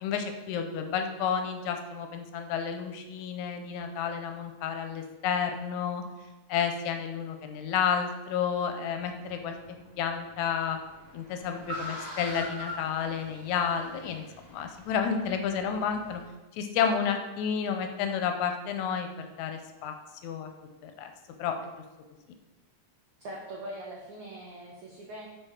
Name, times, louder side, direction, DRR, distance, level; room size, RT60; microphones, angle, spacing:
voice 1, 0.0-6.0 6.5-9.5 10.0-10.8 11.1-14.2 14.5-16.2 16.5-19.9 20.2-20.5 20.8-21.1 21.4-21.6, left 7 dB, 80° left, 6 dB, 1.8 m, -31 dB
Car, 8.9-16.3, equal, 35° right, 1.2 m, -44 dB
voice 2, 23.2-25.3, right 1 dB, 85° right, -3 dB, 1.2 m, -42 dB
5.4 x 4.9 x 3.6 m, 1.1 s
omnidirectional pair, 3.6 m